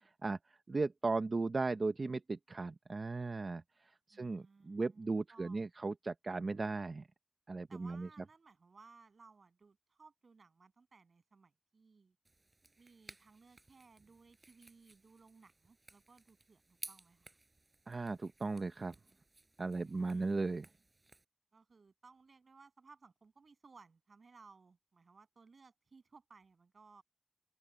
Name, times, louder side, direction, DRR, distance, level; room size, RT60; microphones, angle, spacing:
voice 1, 0.7-3.6 4.1-7.1 7.5-8.1 17.9-18.9 19.6-20.7, right 3 dB, 65° right, 0.7 m, -36 dB
voice 2, 4.1-5.6 7.7-12.2 12.8-17.3 19.6-20.4 21.5-27.0, right 4 dB, 85° right, 7.4 m, -62 dB
sound 1, 12.2-21.2, right 2 dB, 40° right, 6.2 m, -57 dB
open air
wide cardioid pair, 70°, 0 cm